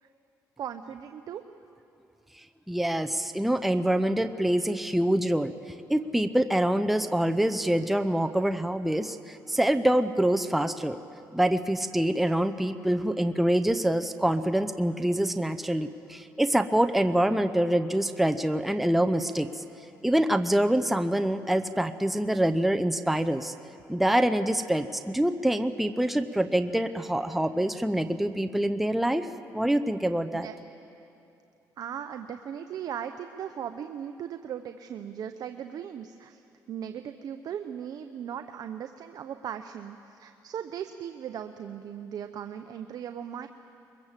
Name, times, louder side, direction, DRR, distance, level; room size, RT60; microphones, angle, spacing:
voice 1, 0.6-1.4 30.3-30.5 31.8-36.4 36.7-43.5, right 9 dB, 60° right, 8 dB, 0.8 m, -38 dB
voice 2, 2.7-5.5 5.9-11.0 11.3-19.6 20.0-23.5 23.9-29.3 29.5-30.5, right 1 dB, ahead, 7 dB, 0.7 m, -25 dB
22.5 x 22.0 x 7.5 m, 2.8 s
cardioid pair, 110°, 7 cm